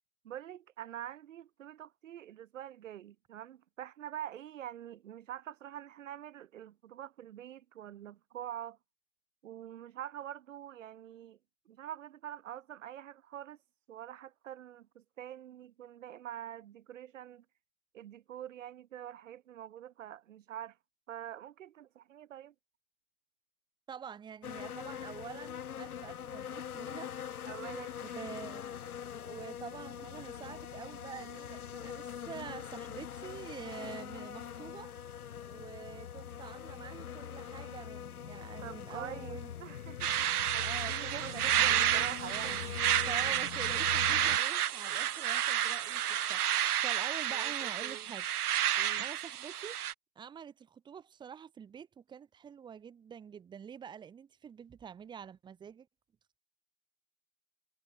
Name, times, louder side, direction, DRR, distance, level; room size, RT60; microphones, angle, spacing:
voice 1, 0.2-8.8 9.4-11.4 11.7-13.6 13.9-17.4 17.9-20.8 21.1-22.5 27.5-28.2 38.6-42.8 44.3-44.4 47.3-48.1 48.8-49.1, right 11 dB, 55° right, 2.6 m, -45 dB
voice 2, 23.9-27.1 28.1-28.7 29.2-34.9 35.5-39.5 40.6-41.8 42.4-42.6 43.0-46.5 46.8-48.3 49.0-49.8 50.1-55.9, right 7 dB, 10° right, 3.0 m, -47 dB
sound 1, 24.4-44.4, left 9 dB, 75° left, 5.0 m, -43 dB
sound 2, 40.0-49.9, right 11 dB, 85° right, 1.1 m, -30 dB
hypercardioid pair, 165°, 44 cm